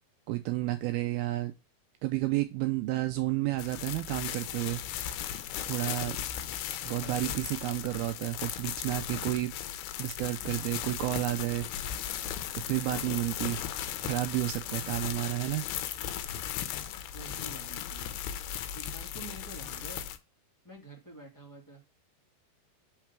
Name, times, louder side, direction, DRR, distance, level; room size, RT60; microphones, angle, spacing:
voice 1, 0.3-1.5 2.0-4.8 5.7-6.2 6.9-9.6 10.0-11.7 12.5-13.7 14.0-15.6, right 18 dB, 85° right, 2.2 m, -31 dB
sound 1, 3.6-20.2, left 10 dB, 75° left, 2.5 m, -37 dB
voice 2, 17.1-18.1 18.4-20.0 20.6-21.9, right 2 dB, 10° left, 1.0 m, -48 dB
5.7 x 4.6 x 5.9 m
omnidirectional pair, 4.9 m